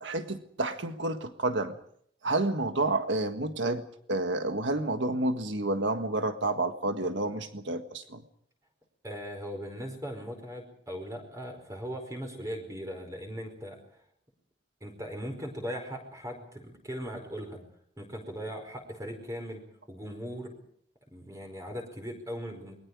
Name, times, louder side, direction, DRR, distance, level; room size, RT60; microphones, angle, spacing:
voice 1, 0.0-1.7 2.2-3.8 4.1-8.2, right 2 dB, 85° right, 7 dB, 1.7 m, -29 dB
voice 2, 9.0-13.8 14.8-17.6 18.0-19.6 19.9-20.5 21.1-22.8, equal, 15° right, 2 dB, 5.0 m, -39 dB
29.0 x 22.0 x 5.0 m, 0.66 s
head